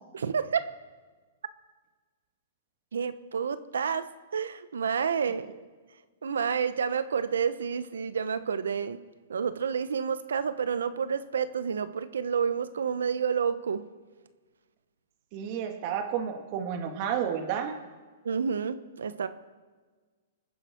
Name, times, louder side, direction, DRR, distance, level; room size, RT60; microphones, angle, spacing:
voice 1, 0.1-0.7 2.9-4.1 4.3-5.5 6.2-9.0 9.3-13.8 18.2-19.3, right 6 dB, 90° right, 13 dB, 1.0 m, -29 dB
voice 2, 15.3-17.7, right 8 dB, 40° right, 5 dB, 2.1 m, -31 dB
26.0 x 9.9 x 4.5 m, 1.4 s
hypercardioid pair, 145°, 0 cm